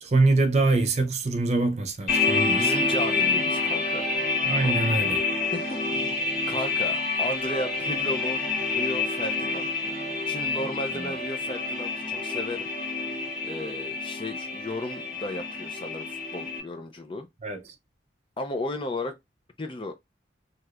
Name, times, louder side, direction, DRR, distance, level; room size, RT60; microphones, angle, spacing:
voice 1, 0.0-2.7 4.4-5.2 10.9-11.1 17.4-17.6, right 2 dB, 35° right, 0.5 m, -24 dB
sound 1, 2.1-16.6, left 3 dB, 45° left, 1.2 m, -28 dB
voice 2, 2.5-4.1 4.6-4.8 5.5-6.2 6.5-8.4 8.7-9.9 10.3-12.7 13.4-17.3 18.4-19.2 19.6-19.9, left 1 dB, 30° left, 0.5 m, -34 dB
3.2 x 2.8 x 2.3 m
head